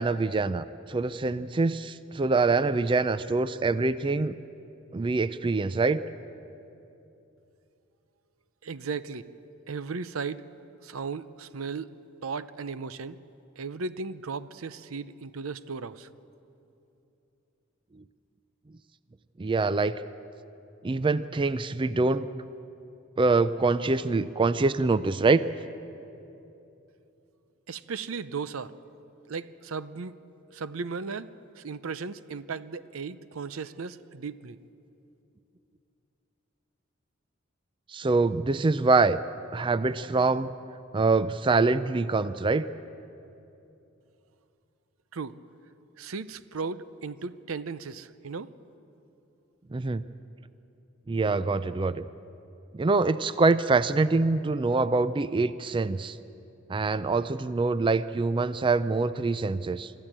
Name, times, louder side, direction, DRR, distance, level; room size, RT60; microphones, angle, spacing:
voice 1, 0.0-4.3 4.9-6.0 19.4-19.9 20.8-22.3 23.2-25.4 37.9-39.2 39.5-40.5 40.9-42.7 49.7-50.0 51.1-52.1 52.7-56.2 56.7-59.9, right 3 dB, 25° right, 14 dB, 0.4 m, -25 dB
voice 2, 8.6-9.2 9.7-10.4 10.8-11.9 12.2-13.2 13.6-16.1 27.7-28.7 29.3-30.1 30.5-31.3 31.6-34.6 45.1-45.3 46.0-48.5, right 5 dB, 85° right, 14 dB, 0.7 m, -36 dB
24.5 x 13.5 x 8.7 m, 2.8 s
head